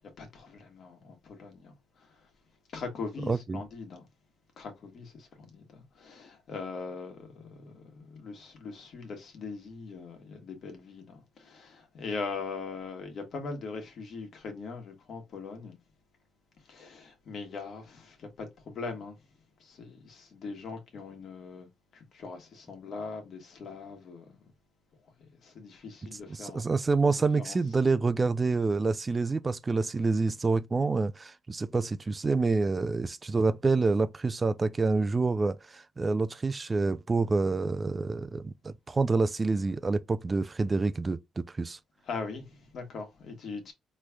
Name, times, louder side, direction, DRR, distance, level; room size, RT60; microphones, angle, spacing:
voice 1, 0.2-1.7 2.7-4.1 4.6-15.8 16.7-19.2 19.6-21.7 21.9-24.3 25.4-26.6 27.0-27.6 42.1-43.7, left 4 dB, 60° left, 1.5 m, -41 dB
voice 2, 3.3-3.6 26.3-41.8, right 3 dB, 25° right, 0.3 m, -27 dB
4.2 x 3.2 x 2.2 m
cardioid pair, 90°, 0 cm